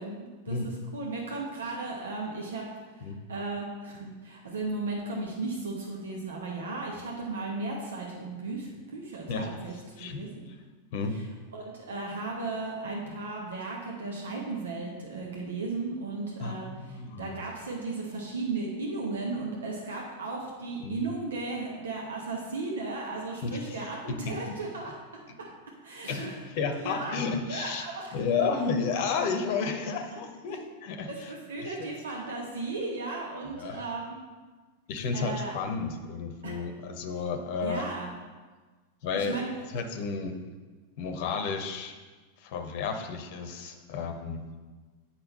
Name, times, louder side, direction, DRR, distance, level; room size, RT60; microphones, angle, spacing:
voice 1, 0.0-10.4 11.1-11.2 11.5-24.9 25.4-25.5 25.8-26.4 26.8-27.2 27.5-28.1 29.6-29.7 30.1-30.2 30.5-30.6 31.1-34.1 35.1-35.5 36.4-36.6 37.6-38.1 39.1-39.5, right 3 dB, 65° right, -2 dB, 1.2 m, -35 dB
voice 2, 16.4-17.3 20.8-21.0 23.4-23.7 24.1-24.5 26.1-27.9 28.1-31.3 31.6-31.9 33.5-33.8 34.9-37.9 39.0-39.4 39.7-40.4 41.0-41.9 42.4-44.4, left 5 dB, 45° left, 6 dB, 0.9 m, -32 dB
8.0 x 6.0 x 4.1 m, 1.3 s
figure-of-eight pair, 90°, 0 cm